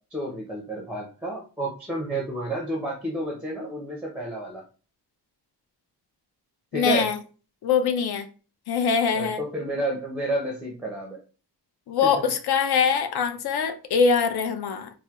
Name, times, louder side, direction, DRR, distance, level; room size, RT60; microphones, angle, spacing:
voice 1, 0.1-4.6 6.7-7.1 9.1-11.2, right 1 dB, 5° right, 0.5 m, -30 dB
voice 2, 6.7-7.2 7.6-8.3 8.7-9.4 11.9-14.9, left 6 dB, 65° left, 0.5 m, -23 dB
4.2 x 2.1 x 2.3 m
wide cardioid pair, 135°, 41 cm